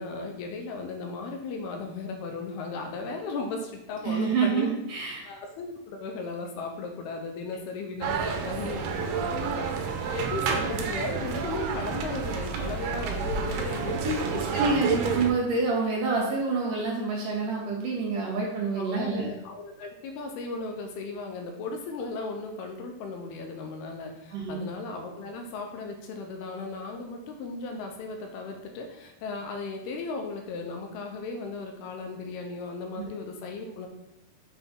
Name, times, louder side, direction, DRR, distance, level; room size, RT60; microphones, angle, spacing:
voice 1, 0.0-4.7 5.3-9.7 10.1-14.7 18.8-33.9, left 3 dB, 80° left, 3 dB, 2.8 m, -36 dB
voice 2, 4.0-5.2 14.0-19.3 24.3-24.6 33.0-33.1, right 4 dB, 55° right, -3 dB, 3.1 m, -27 dB
sound 1, 8.0-15.3, right 6 dB, 75° right, 2.6 m, -30 dB
7.3 x 6.0 x 3.9 m, 0.87 s
omnidirectional pair, 4.7 m